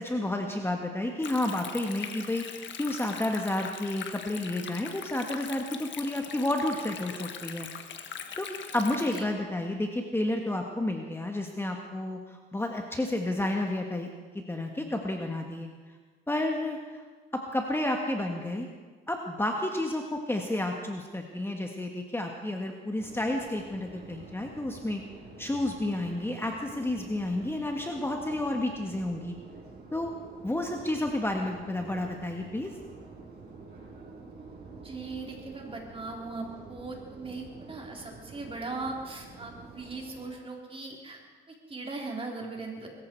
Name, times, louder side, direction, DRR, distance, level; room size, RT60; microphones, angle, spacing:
voice 1, 0.0-7.7 8.4-8.5 8.7-14.1 14.3-15.7 16.3-17.0 17.3-18.7 19.1-25.0 25.4-29.4 29.9-30.1 30.4-32.7, left 1 dB, 10° left, 2 dB, 1.5 m, -31 dB
Stream, 1.2-9.2, left 7 dB, 65° left, 1.5 m, -41 dB
Subway metro underground, 23.0-40.3, right 4 dB, 55° right, 5.7 m, -48 dB
voice 2, 34.8-41.2 41.5-42.9, right 3 dB, 25° right, 0 dB, 3.8 m, -39 dB
21.0 x 14.5 x 4.6 m, 1.4 s
cardioid pair, 90°, 20 cm